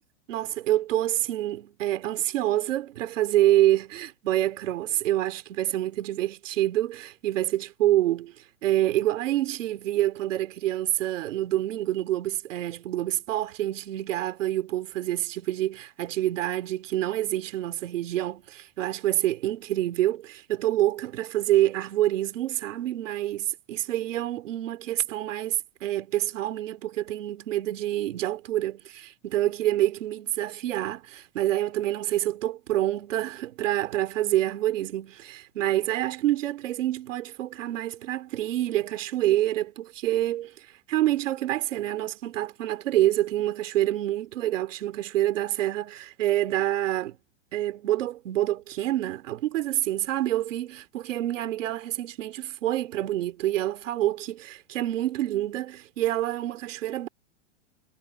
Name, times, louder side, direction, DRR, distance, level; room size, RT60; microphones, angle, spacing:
voice 1, 0.3-8.3 8.6-40.5 40.9-47.2 47.5-57.1, right 14 dB, 80° right, 3.0 m, -27 dB
supercardioid pair, 150°, 37 cm